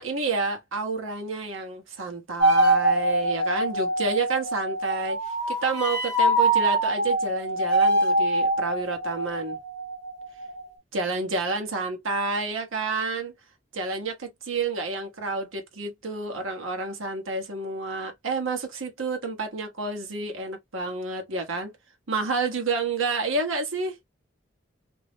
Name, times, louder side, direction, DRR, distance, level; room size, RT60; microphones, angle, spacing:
voice 1, 0.0-9.6 10.9-13.3 13.7-21.7 22.1-24.0, right 3 dB, 80° right, 1.1 m, -29 dB
sound 1, 2.4-10.7, right 1 dB, 55° right, 1.0 m, -24 dB
2.7 x 2.0 x 3.1 m
head